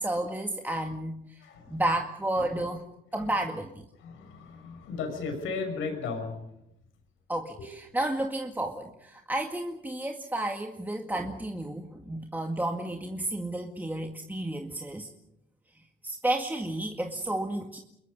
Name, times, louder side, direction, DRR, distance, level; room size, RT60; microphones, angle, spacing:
voice 1, 0.0-1.3 1.7-2.8 3.1-3.8 7.3-15.1 16.0-17.8, right 1 dB, 10° right, 3 dB, 2.0 m, -31 dB
voice 2, 1.4-1.8 2.4-2.6 3.2-3.3 4.0-6.5 7.6-7.7, left 4 dB, 90° left, 6 dB, 6.2 m, -36 dB
29.0 x 22.0 x 5.4 m, 0.81 s
cardioid pair, 90°, 20 cm